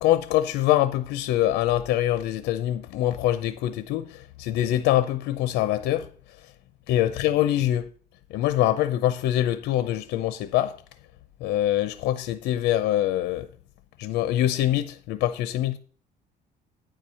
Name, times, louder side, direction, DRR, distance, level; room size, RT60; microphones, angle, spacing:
voice 1, 0.0-6.1 6.9-7.9 8.3-10.7 11.4-13.5 14.0-15.8, left 13 dB, 85° left, 0.7 m, -24 dB
9.2 x 4.7 x 6.8 m
cardioid pair, 110°, 17 cm